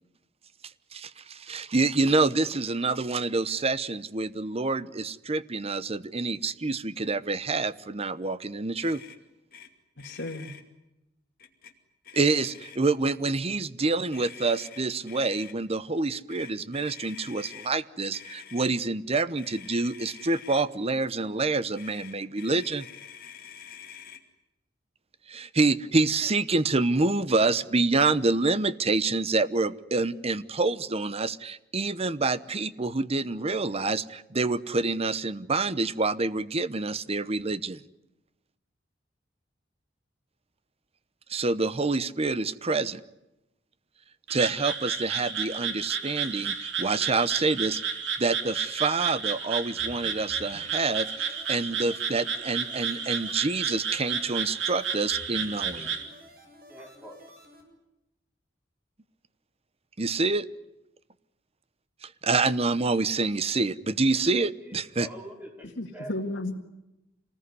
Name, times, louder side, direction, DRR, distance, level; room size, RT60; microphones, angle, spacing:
voice 1, 0.9-9.0 12.1-22.9 25.3-37.8 41.3-43.0 44.3-55.9 60.0-60.5 62.0-65.1, right 3 dB, 35° right, 15 dB, 0.9 m, -27 dB
Motor vehicle (road), 8.8-9.2 9.5-9.7 10.0-10.6 11.4-11.7 12.0-13.0 14.1-15.5 16.3-17.7 18.1-18.7 19.4-20.7 21.7-24.2, left 8 dB, 50° left, 2.6 m, -47 dB
voice 2, 10.0-10.5 65.8-66.6, left 2 dB, 85° left, 0 dB, 2.0 m, -33 dB
Frog, 44.3-56.0, right 7 dB, 75° right, 3.1 m, -32 dB
sound 1, 49.8-57.6, equal, 55° right, 6.8 m, -52 dB
voice 3, 55.7-56.1 56.7-57.3 64.6-66.1, right 1 dB, 10° right, 2 dB, 4.6 m, -45 dB
27.0 x 20.0 x 9.7 m, 0.94 s
head